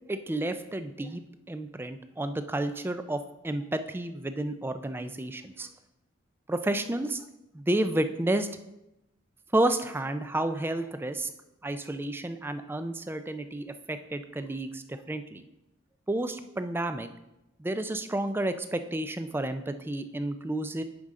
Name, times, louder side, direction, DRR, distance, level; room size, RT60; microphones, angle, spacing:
voice 1, 0.1-1.2 1.5-5.7 6.5-7.2 7.5-8.5 9.5-11.3 11.6-15.4 16.1-17.1 17.6-20.8, right 1 dB, 10° right, 9 dB, 0.3 m, -31 dB
9.6 x 5.0 x 3.6 m, 0.92 s
head